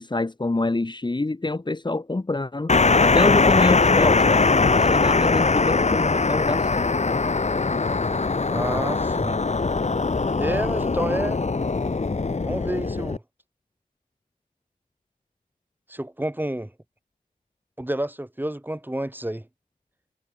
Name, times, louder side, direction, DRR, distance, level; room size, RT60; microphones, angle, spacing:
voice 1, 0.0-2.7 3.0-6.9, left 2 dB, 30° left, 1.9 m, -26 dB
sound 1, 2.7-13.2, left 4 dB, 50° left, 2.0 m, -21 dB
voice 2, 8.5-9.4 10.4-11.4 12.4-13.2 15.9-16.7 17.8-19.5, right 1 dB, 10° right, 4.3 m, -29 dB
wide cardioid pair, 65°, 15 cm